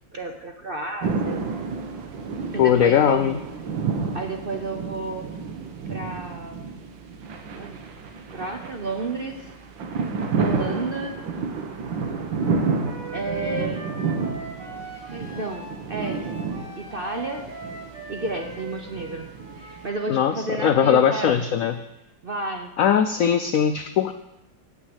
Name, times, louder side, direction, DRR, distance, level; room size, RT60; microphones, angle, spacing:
voice 1, 0.1-1.5 2.5-3.3 4.1-5.3 5.9-6.6 7.6-7.8 8.3-9.5 10.4-11.2 13.1-13.8 15.1-16.2 16.8-17.4 18.1-19.3 19.6-21.4 22.2-22.7, right 3 dB, 45° right, 3 dB, 0.7 m, -31 dB
sound 1, 1.0-19.9, right 4 dB, 90° right, 1.8 m, -30 dB
voice 2, 2.6-3.4 20.1-21.7 22.8-24.1, left 8 dB, 80° left, 9 dB, 0.7 m, -20 dB
Wind instrument woodwind instrument, 12.4-19.9, right 1 dB, 65° right, 3.5 m, -40 dB
8.9 x 7.5 x 8.0 m, 0.91 s
omnidirectional pair, 2.0 m